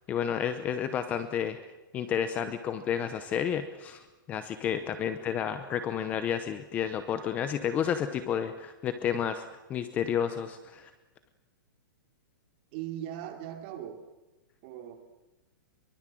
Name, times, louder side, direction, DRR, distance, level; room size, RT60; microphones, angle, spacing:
voice 1, 0.1-1.6 1.9-9.4 9.7-10.9, left 8 dB, 15° left, 10 dB, 0.8 m, -31 dB
voice 2, 4.8-5.3 12.7-14.0 14.6-15.0, right 11 dB, 30° right, 5 dB, 2.9 m, -40 dB
24.0 x 23.5 x 7.7 m, 1.1 s
hypercardioid pair, 175°, 11 cm